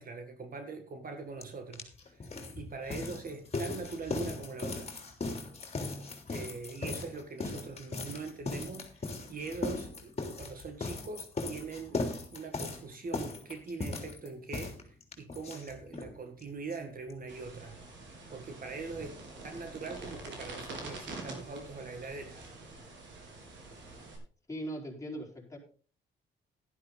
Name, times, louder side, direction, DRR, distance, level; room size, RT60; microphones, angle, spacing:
voice 1, 0.0-2.2 2.6-4.9 6.3-12.0 12.3-14.8 15.2-17.8 18.3-19.2 19.4-22.5, right 4 dB, 45° right, 1.9 m, -42 dB
sound 1, 1.4-1.5 1.7-16.1 16.4-16.5 16.7-16.8 17.1-17.2, left 3 dB, 30° left, 3.3 m, -38 dB
sound 2, 17.3-24.2, right 3 dB, 65° right, 4.7 m, -46 dB
voice 2, 24.5-25.6, right 1 dB, 15° left, 4.6 m, -39 dB
12.0 x 11.0 x 4.0 m
cardioid pair, 90°, 20 cm